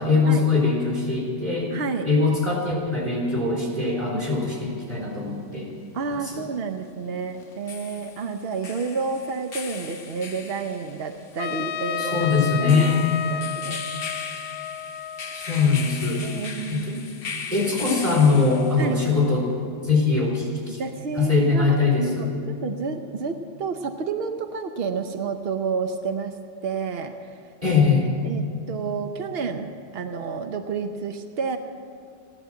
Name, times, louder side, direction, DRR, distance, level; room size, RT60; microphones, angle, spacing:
voice 1, 0.0-1.7 2.0-5.7 6.3-6.4 12.0-13.0 15.3-16.3 16.7-17.0 17.5-19.4 19.8-20.8 21.2-22.3 27.6-28.0, left 4 dB, 20° right, -4 dB, 3.7 m, -22 dB
voice 2, 1.7-2.1 5.9-12.3 12.6-12.9 13.3-13.8 16.2-17.2 18.8-19.0 20.8-26.4 26.6-27.3 28.2-31.6, right 5 dB, 70° right, 7 dB, 0.5 m, -30 dB
sound 1, 4.8-4.9 7.4-19.0, left 5 dB, 45° left, 0.9 m, -38 dB
Trumpet, 11.4-16.2, left 8 dB, 80° left, 1.2 m, -32 dB
14.5 x 11.0 x 7.7 m, 2.5 s
omnidirectional pair, 1.9 m